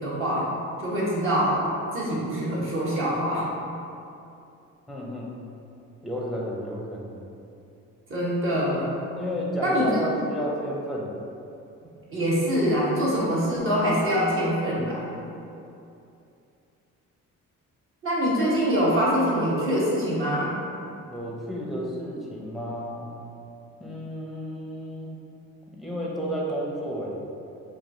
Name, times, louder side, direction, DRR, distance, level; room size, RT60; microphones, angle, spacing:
voice 1, 0.0-0.5 0.8-1.7 1.9-3.5 8.1-8.9 9.6-10.0 12.1-15.1 18.0-20.6, equal, 45° right, -7 dB, 1.2 m, -24 dB
voice 2, 4.9-5.3 6.0-7.2 9.2-11.1 21.1-23.1 23.8-25.2 25.7-27.2, equal, ahead, -4 dB, 0.7 m, -32 dB
4.7 x 2.4 x 2.7 m, 2.7 s
cardioid pair, 90°, 30 cm